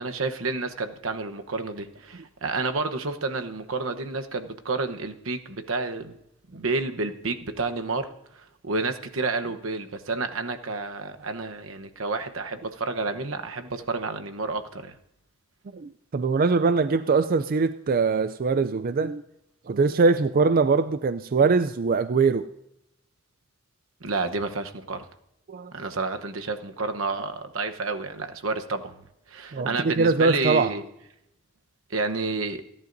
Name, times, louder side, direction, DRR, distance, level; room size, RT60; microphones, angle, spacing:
voice 1, 0.0-6.1 6.5-8.1 8.4-14.9 24.0-25.0 25.7-28.9 29.3-30.8 31.9-32.6, right 3 dB, 85° right, 7 dB, 1.0 m, -30 dB
voice 2, 15.7-19.2 19.7-22.5 25.5-25.7 29.5-30.7, right 4 dB, 45° right, 11 dB, 0.4 m, -22 dB
28.0 x 11.0 x 2.7 m, 0.82 s
head